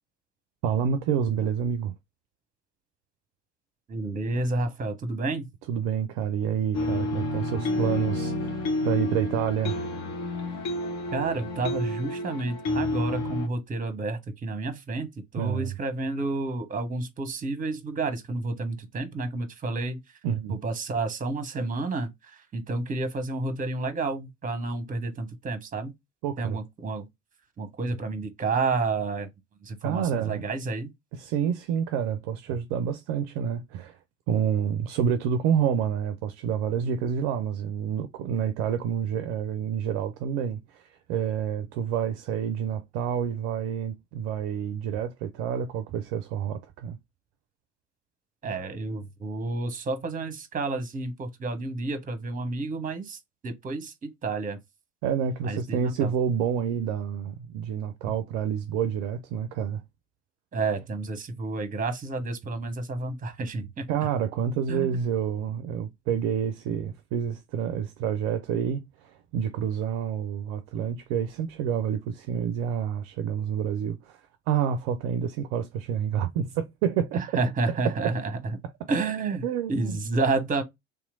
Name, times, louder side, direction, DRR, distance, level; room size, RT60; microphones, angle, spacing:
voice 1, 0.6-1.9 5.7-9.8 15.4-15.7 20.2-20.6 26.2-26.6 29.8-30.4 31.1-34.0 34.3-47.0 55.0-59.8 63.9-77.2 77.7-78.2 79.4-80.0, right 8 dB, 50° right, 0.4 m, -28 dB
voice 2, 3.9-5.5 11.1-20.0 20.5-25.9 26.4-27.1 27.6-29.3 29.6-30.9 48.4-54.6 55.4-56.1 60.5-63.8 64.7-64.9 77.1-78.4 78.9-80.6, right 3 dB, 25° right, 0.9 m, -30 dB
sound 1, 6.7-13.5, left 2 dB, 50° left, 1.0 m, -30 dB
3.4 x 3.0 x 2.4 m
figure-of-eight pair, 55°, 35 cm